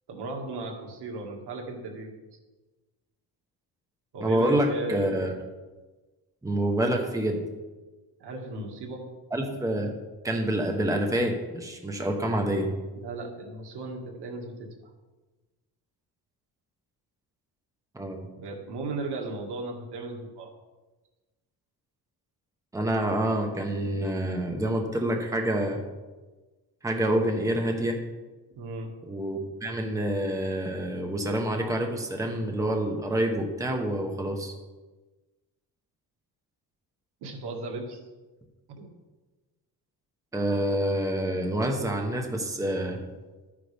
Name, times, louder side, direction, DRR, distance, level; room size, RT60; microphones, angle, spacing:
voice 1, 0.1-2.1 4.1-5.1 8.2-9.1 13.0-14.7 18.4-20.5 28.6-28.9 37.2-38.1 38.8-38.9, right 3 dB, 80° right, 0 dB, 2.1 m, -36 dB
voice 2, 4.2-5.3 6.4-7.4 9.3-9.9 10.2-12.7 17.9-18.3 22.7-25.8 26.8-28.0 29.1-34.5 40.3-43.0, right 1 dB, 10° right, 3 dB, 1.0 m, -27 dB
12.5 x 9.6 x 3.5 m, 1.2 s
cardioid pair, 155°, 39 cm